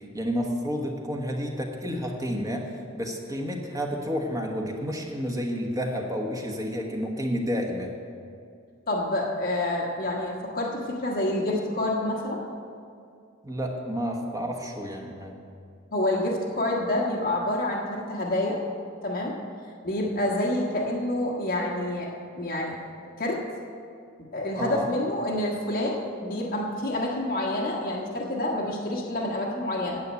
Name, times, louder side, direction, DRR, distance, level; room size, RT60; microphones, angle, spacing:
voice 1, 0.1-7.9 13.4-15.3 24.6-24.9, equal, 15° right, 1 dB, 1.2 m, -30 dB
voice 2, 8.9-12.4 15.9-18.6 19.0-19.4 19.8-22.8 23.2-23.4 24.3-30.0, left 1 dB, 45° left, -3 dB, 1.4 m, -28 dB
9.6 x 7.8 x 8.1 m, 2.4 s
head